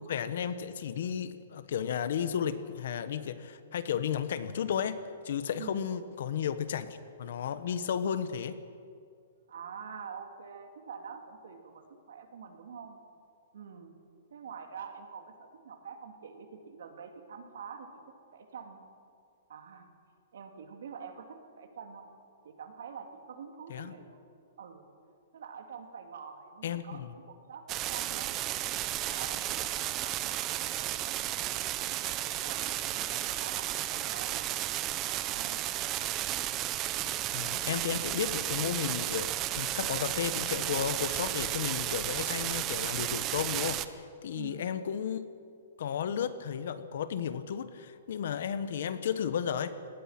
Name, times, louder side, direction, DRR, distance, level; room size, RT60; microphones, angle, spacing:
voice 1, 0.1-8.6 23.7-23.9 26.6-27.1 37.3-45.2 45.8-49.7, left 8 dB, 55° left, 12 dB, 1.2 m, -33 dB
voice 2, 9.5-13.0 13.5-14.0 14.3-18.8 19.5-19.9 20.3-22.1 22.4-24.0 24.6-24.8 25.3-28.7 29.1-34.4 35.0-35.8 44.3-44.7, right 6 dB, 70° right, 5 dB, 3.0 m, -46 dB
sound 1, 27.7-43.9, right 14 dB, 20° right, 0.6 m, -33 dB
24.5 x 19.5 x 6.0 m, 2.4 s
hypercardioid pair, 175°, 0 cm